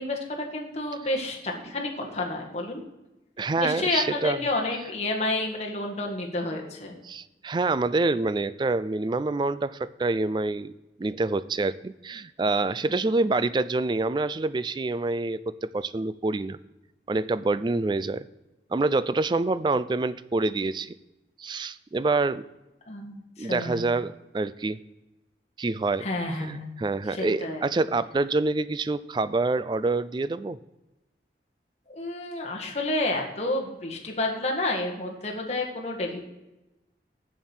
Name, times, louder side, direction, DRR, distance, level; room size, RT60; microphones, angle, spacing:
voice 1, 0.0-2.8 3.6-6.9 22.9-23.9 26.0-26.7 27.1-27.6 31.9-36.2, left 2 dB, 35° left, 0 dB, 1.7 m, -30 dB
voice 2, 3.4-4.4 7.0-10.7 11.0-16.6 17.1-18.2 18.7-20.9 21.4-22.5 23.4-24.8 25.6-26.1 26.4-30.6, right 3 dB, 25° right, 16 dB, 0.3 m, -26 dB
7.3 x 7.2 x 6.0 m, 0.99 s
head